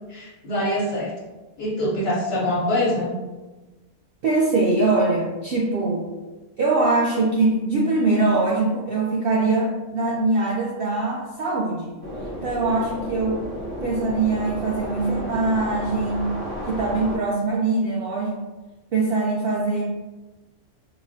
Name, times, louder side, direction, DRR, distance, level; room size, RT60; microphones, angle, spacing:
voice 1, 0.1-1.1 1.6-3.1, left 1 dB, 45° left, -8 dB, 1.3 m, -24 dB
voice 2, 4.2-6.1 6.6-12.0 12.4-13.5 13.8-16.4 16.7-18.4 18.9-19.8, right 3 dB, 90° right, -4 dB, 0.5 m, -22 dB
sound 1, 12.0-17.2, equal, 50° right, 0.8 m, -32 dB
4.9 x 2.0 x 2.6 m, 1.2 s
omnidirectional pair, 1.5 m